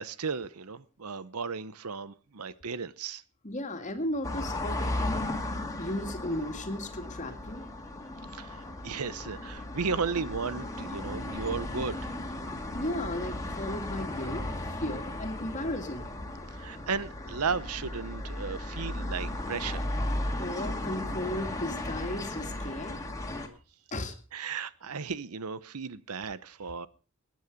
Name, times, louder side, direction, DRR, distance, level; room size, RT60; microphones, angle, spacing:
voice 1, 0.0-3.2 8.3-12.0 16.5-19.9 24.3-26.9, right 5 dB, 80° right, 0.8 m, -35 dB
voice 2, 3.4-5.3 5.8-7.7 12.7-14.5 14.8-16.1 20.4-23.0 23.9-24.1, left 1 dB, 35° left, 2.2 m, -35 dB
sound 1, 4.2-23.5, left 1 dB, 15° left, 2.1 m, -35 dB
19.5 x 9.6 x 5.1 m
head